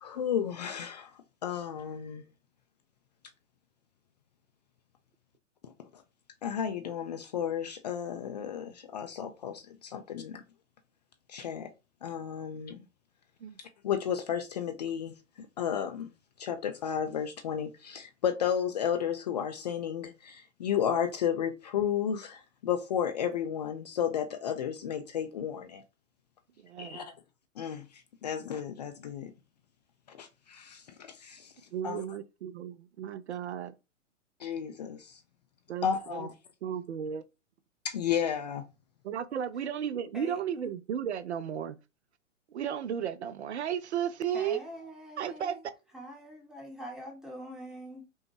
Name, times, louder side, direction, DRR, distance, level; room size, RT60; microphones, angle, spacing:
voice 1, 0.0-1.1 1.4-2.2 6.4-10.4 11.3-11.7 12.0-12.8 13.8-16.1 16.4-25.8 26.8-27.0 27.6-27.8 28.2-29.3 30.1-30.8 31.1-31.5 31.8-32.0 34.4-35.2 35.8-36.3 37.8-38.6, left 8 dB, 35° left, 0.4 m, -33 dB
voice 2, 26.6-27.1 31.7-33.7 35.7-36.3 36.6-37.2 39.0-41.8 42.5-44.6 45.2-45.6, right 9 dB, 60° right, 0.5 m, -34 dB
voice 3, 40.1-40.8 44.3-45.6 45.9-48.1, equal, ahead, 0.8 m, -44 dB
5.2 x 2.1 x 3.1 m
figure-of-eight pair, 115°, 39 cm